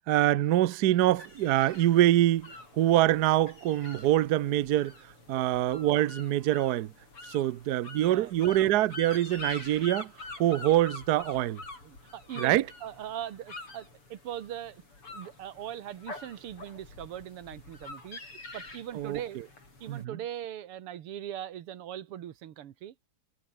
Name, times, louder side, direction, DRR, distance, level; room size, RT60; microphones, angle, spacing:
voice 1, 0.1-4.9 5.3-6.9 7.3-10.1 10.4-11.6 12.4-12.6 19.0-19.2 19.9-20.0, right 13 dB, 65° right, 1.0 m, -25 dB
sound 1, 1.1-20.0, left 2 dB, 80° left, 8.4 m, -46 dB
voice 2, 8.0-8.3 11.8-14.8 15.1-18.2 18.5-19.4 19.8-23.0, right 11 dB, 85° right, 2.2 m, -40 dB
omnidirectional pair, 2.4 m